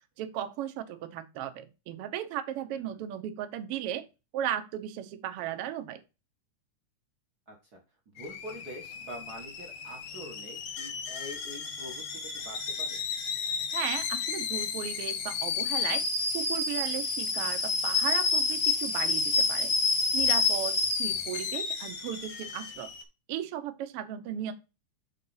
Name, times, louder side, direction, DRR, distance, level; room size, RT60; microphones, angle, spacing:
voice 1, 0.2-4.0 4.3-6.0 13.7-16.0 16.3-19.7 20.1-22.9 23.3-24.5, right 11 dB, 80° right, 8 dB, 1.3 m, -36 dB
voice 2, 2.7-3.1 7.5-7.8 8.1-13.0, equal, 55° right, 1 dB, 1.0 m, -45 dB
Alarm / Boiling, 8.2-23.0, left 4 dB, 60° left, 1.4 m, -30 dB
6.4 x 4.1 x 5.5 m, 0.28 s
omnidirectional pair, 3.8 m